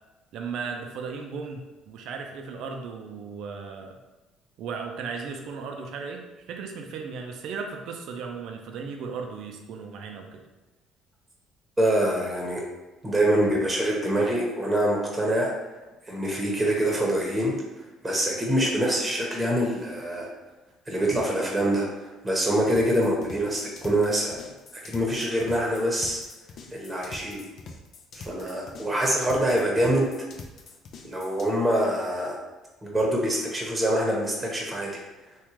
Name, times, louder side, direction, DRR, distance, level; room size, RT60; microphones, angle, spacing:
voice 1, 0.3-4.0 4.6-10.4, right 5 dB, 70° right, 3 dB, 0.5 m, -36 dB
voice 2, 11.8-12.6 13.0-15.5 16.0-20.3 20.9-24.4 24.7-26.2 26.7-27.4 28.1-30.1 31.0-32.4 32.8-34.9, right 1 dB, 15° right, -2 dB, 1.0 m, -25 dB
sound 1, 22.8-31.5, left 4 dB, 60° left, 0.5 m, -45 dB
3.5 x 2.3 x 3.0 m, 1.1 s
supercardioid pair, 75°, 0 cm